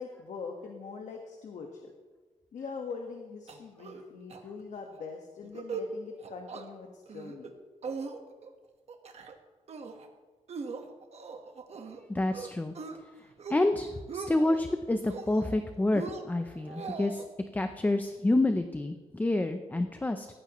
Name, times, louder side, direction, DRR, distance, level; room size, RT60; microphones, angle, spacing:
voice 1, 0.0-1.9 2.5-7.5, left 5 dB, 70° left, 2 dB, 1.5 m, -42 dB
sound 1, 3.5-4.0 4.3-4.4 4.8-5.0 5.4-5.9 6.2-6.6 7.1-7.5 7.8-8.5 8.9-9.3 9.7-10.1 10.5-12.0 12.3-13.0 13.3-13.7 14.0-14.6 15.0-15.6 15.9-17.2, right 4 dB, 55° right, 1.4 m, -40 dB
voice 2, 12.1-12.7 13.5-17.2 17.5-20.3, left 2 dB, 15° left, 7 dB, 0.6 m, -28 dB
18.0 x 15.0 x 3.1 m, 1.4 s
wide cardioid pair, 150°, 13 cm